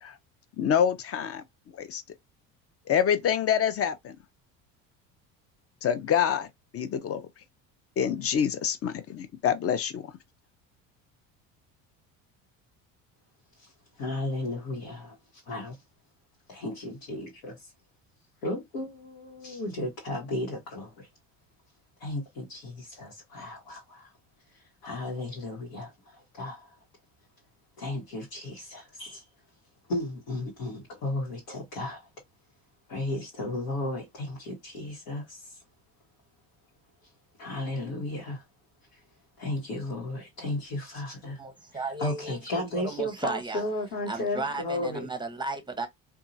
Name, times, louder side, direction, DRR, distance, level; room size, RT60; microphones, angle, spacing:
voice 1, 0.6-1.4 1.7-2.0 2.9-4.2 5.8-6.5 6.7-7.3 8.0-10.0, left 8 dB, 35° left, 0.5 m, -26 dB
voice 2, 13.6-15.2 15.5-15.8 16.5-17.5 18.4-21.1 22.0-24.1 24.5-26.8 27.8-29.2 29.9-32.1 32.9-35.6 37.4-38.4 38.9-39.0 39.4-41.4 41.7-45.1, left 1 dB, 80° left, 1.2 m, -34 dB
voice 3, 41.4-43.6 44.1-45.9, right 3 dB, 10° right, 0.7 m, -35 dB
2.7 x 2.3 x 2.5 m
hypercardioid pair, 75°, 41 cm